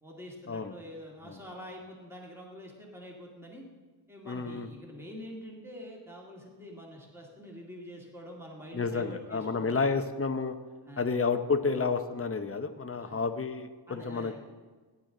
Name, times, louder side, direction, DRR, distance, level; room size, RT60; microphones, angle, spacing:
voice 1, 0.0-3.6 4.1-10.0 10.9-11.0 12.1-12.2 13.0-13.2 13.9-14.4, equal, 5° right, -2 dB, 2.0 m, -46 dB
voice 2, 4.3-4.7 8.7-10.5 11.0-14.4, left 4 dB, 30° left, 7 dB, 0.8 m, -30 dB
16.5 x 9.8 x 3.9 m, 1.4 s
wide cardioid pair, 135°, 46 cm